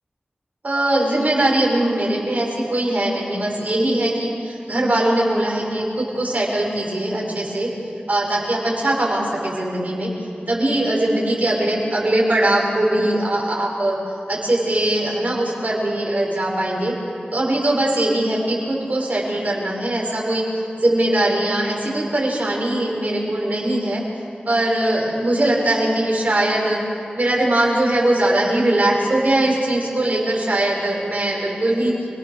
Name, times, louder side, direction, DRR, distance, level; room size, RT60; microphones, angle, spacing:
voice 1, 0.6-7.7 8.1-10.1 10.5-14.0 14.3-16.9 17.3-24.0 24.5-26.8 27.2-31.9, right 1 dB, 50° right, -2 dB, 6.6 m, -21 dB
28.5 x 18.5 x 6.9 m, 2.6 s
wide cardioid pair, 55°, 3 cm